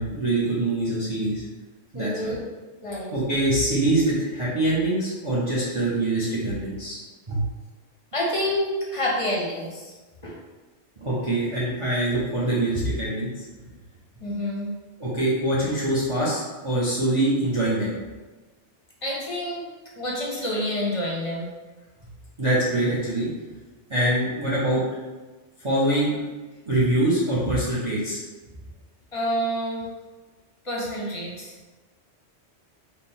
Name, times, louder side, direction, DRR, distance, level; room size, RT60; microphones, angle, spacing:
voice 1, 0.0-1.4 1.9-2.3 3.1-7.0 7.3-7.4 11.0-13.4 15.0-17.9 22.4-23.3 23.9-24.8 25.6-26.2 26.7-28.2, right 1 dB, 35° right, -7 dB, 0.6 m, -24 dB
voice 2, 1.9-2.4 2.8-3.1 8.1-9.9 10.2-10.4 14.2-14.7 19.0-19.6 20.0-21.5 29.1-29.9 30.6-31.5, equal, 35° left, -4 dB, 0.7 m, -28 dB
3.5 x 2.1 x 4.2 m, 1.2 s
omnidirectional pair, 1.2 m